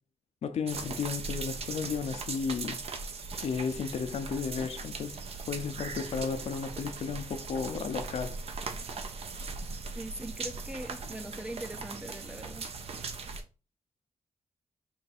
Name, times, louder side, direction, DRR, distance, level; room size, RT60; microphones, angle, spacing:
voice 1, 0.4-2.8 3.4-5.2 5.5-8.4, left 6 dB, 75° left, 0.6 m, -33 dB
sound 1, 0.7-13.4, right 4 dB, 65° right, 0.7 m, -39 dB
voice 2, 10.0-12.7, right 1 dB, 10° right, 0.4 m, -41 dB
4.5 x 2.6 x 4.0 m
cardioid pair, 90°, 11 cm